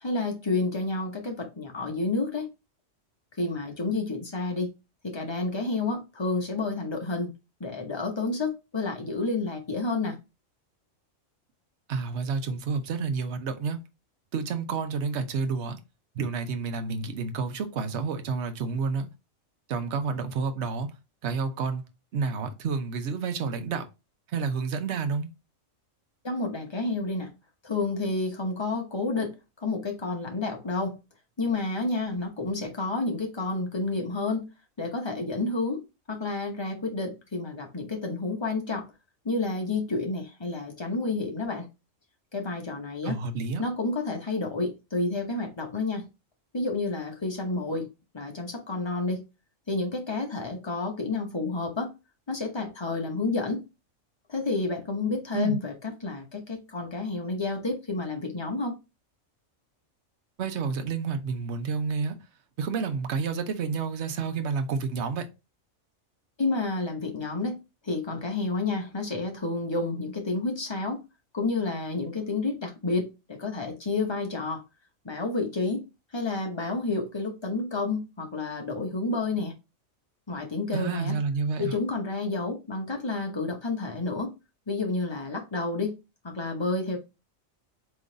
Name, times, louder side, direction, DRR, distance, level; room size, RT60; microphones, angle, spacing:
voice 1, 0.0-2.5 3.4-4.7 5.0-7.3 7.6-10.2 26.2-27.3 27.6-31.0 31.4-34.5 34.8-38.8 39.2-41.7 42.3-43.2 43.6-46.0 46.5-47.9 48.1-49.2 49.7-51.9 52.3-53.6 54.3-58.8 66.4-67.6 67.8-71.0 71.3-74.6 75.0-75.8 76.1-79.5 80.3-81.1 81.6-84.3 84.7-85.9 86.2-87.0, left 3 dB, 25° left, 0.9 m, -30 dB
voice 2, 11.9-13.8 14.3-15.8 16.1-19.1 19.7-20.9 21.2-23.9 24.3-25.3 43.0-43.6 55.3-55.6 60.4-62.2 62.6-65.3 80.7-81.7, right 5 dB, 60° right, 0.9 m, -30 dB
3.7 x 3.0 x 3.8 m
omnidirectional pair, 1.4 m